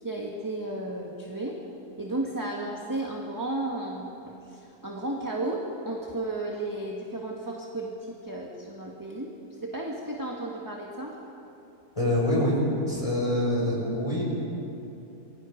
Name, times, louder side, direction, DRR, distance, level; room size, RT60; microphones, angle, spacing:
voice 1, 0.0-1.6 2.0-9.3 9.6-11.2, right 2 dB, 10° right, -1 dB, 1.6 m, -33 dB
voice 2, 12.0-12.6 12.9-14.2, left 1 dB, 20° left, -3 dB, 6.0 m, -25 dB
28.5 x 22.5 x 5.2 m, 2.9 s
omnidirectional pair, 1.7 m